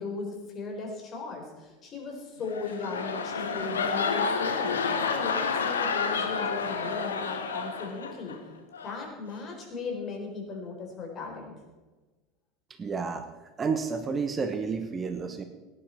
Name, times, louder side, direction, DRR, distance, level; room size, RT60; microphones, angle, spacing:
voice 1, 0.0-4.8 5.0-8.4 8.8-11.5, left 4 dB, 35° left, 1 dB, 4.1 m, -37 dB
sound 1, 2.4-8.4 8.7-9.0, left 5 dB, 75° left, 1.1 m, -30 dB
voice 2, 12.8-13.2 13.6-15.4, right 5 dB, 25° right, 8 dB, 1.1 m, -30 dB
17.5 x 10.5 x 4.5 m, 1.2 s
figure-of-eight pair, 75°, 0 cm